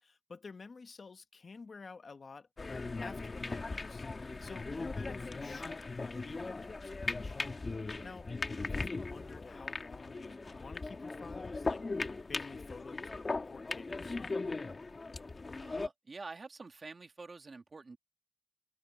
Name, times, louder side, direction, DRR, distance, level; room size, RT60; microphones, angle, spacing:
voice 1, 0.0-7.4 8.0-8.3 8.6-11.8 12.3-14.2, left 4 dB, 60° left, 1.4 m, -51 dB
sound 1, 2.6-15.9, left 3 dB, 40° left, 1.8 m, -39 dB
voice 2, 15.6-18.0, right 3 dB, 50° right, 2.3 m, -48 dB
wide cardioid pair, 115°, 0 cm